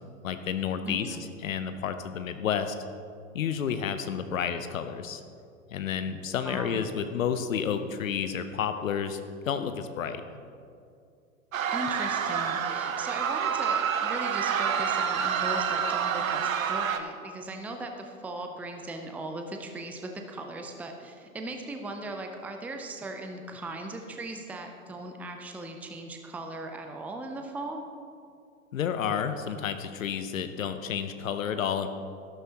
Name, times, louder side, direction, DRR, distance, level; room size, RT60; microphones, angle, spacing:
voice 1, 0.2-1.2 1.4-2.7 3.3-5.2 5.7-10.2 28.7-31.9, left 7 dB, 70° left, 9 dB, 0.9 m, -30 dB
voice 2, 0.9-1.2 6.4-6.8 11.7-27.8, right 2 dB, 5° right, 4 dB, 0.6 m, -38 dB
sound 1, 11.5-17.0, right 7 dB, 75° right, 0.9 m, -28 dB
12.5 x 12.0 x 3.0 m, 2.4 s
figure-of-eight pair, 100°, 41 cm